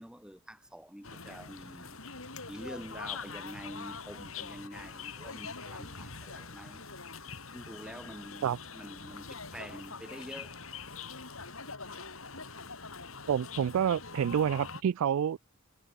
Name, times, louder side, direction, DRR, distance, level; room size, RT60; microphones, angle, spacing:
voice 1, 0.0-2.0 2.5-6.8 7.5-10.6, equal, 5° right, 2.8 m, -47 dB
sound 1, 1.0-14.8, left 5 dB, 70° left, 6.8 m, -44 dB
voice 2, 13.3-15.4, right 8 dB, 75° right, 0.3 m, -28 dB
head